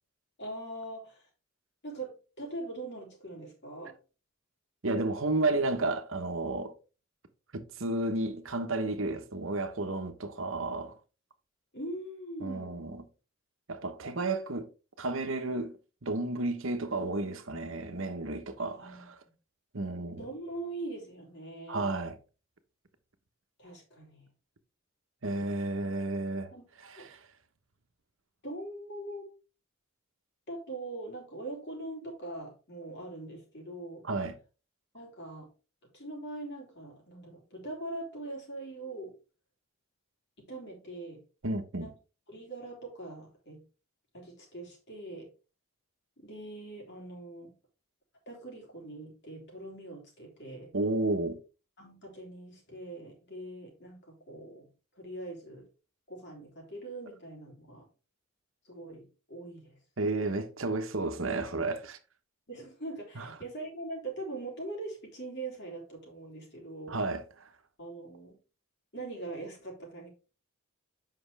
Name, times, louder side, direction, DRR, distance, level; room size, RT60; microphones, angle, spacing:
voice 1, 0.4-1.3 1.8-4.0 11.7-12.9 18.8-19.1 20.2-22.0 23.6-24.3 26.5-27.1 28.4-29.3 30.5-34.1 34.9-35.5 35.9-39.1 40.4-41.2 41.8-41.9 42.3-43.6 44.1-45.3 46.2-47.5 48.3-50.7 51.8-54.7 55.0-55.7 56.1-57.9 58.7-59.8 62.5-67.0 67.8-68.4 68.9-70.1, right 2 dB, 55° left, 3.5 m, -42 dB
voice 2, 4.8-6.7 7.5-10.9 12.4-13.0 13.7-14.7 15.0-15.7 16.0-19.1 19.7-20.2 21.7-22.2 25.2-26.5 26.9-27.2 34.0-34.4 41.4-41.9 50.7-51.4 60.0-62.0 63.2-63.3 66.9-67.2, right 2 dB, 65° right, 1.1 m, -32 dB
7.9 x 5.8 x 3.4 m
head